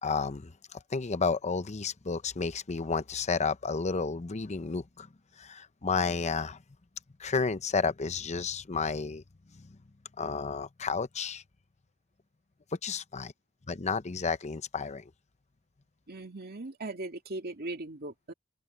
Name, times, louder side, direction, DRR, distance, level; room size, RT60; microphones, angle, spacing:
voice 1, 0.0-5.1 5.4-6.6 7.2-9.2 9.5-9.8 10.2-11.4 12.8-13.3 13.7-15.1, left 4 dB, 30° left, 0.7 m, -31 dB
voice 2, 16.1-18.3, right 2 dB, 45° right, 2.2 m, -39 dB
open air
head